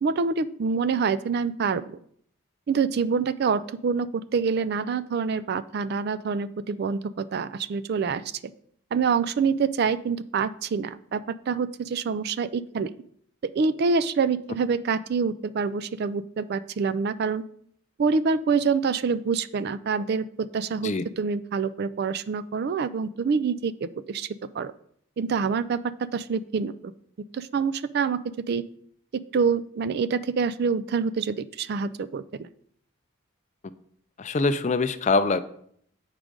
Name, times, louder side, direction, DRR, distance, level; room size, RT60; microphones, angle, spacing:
voice 1, 0.0-2.0 2.7-8.5 8.9-12.9 13.4-17.4 18.0-24.3 24.5-24.7 25.2-25.8 26.1-26.9 27.3-28.2 28.5-28.6 29.3-32.5, right 5 dB, 50° right, 15 dB, 0.3 m, -26 dB
voice 2, 34.2-35.4, left 3 dB, 35° left, 12 dB, 0.4 m, -23 dB
7.4 x 4.9 x 5.1 m, 0.65 s
head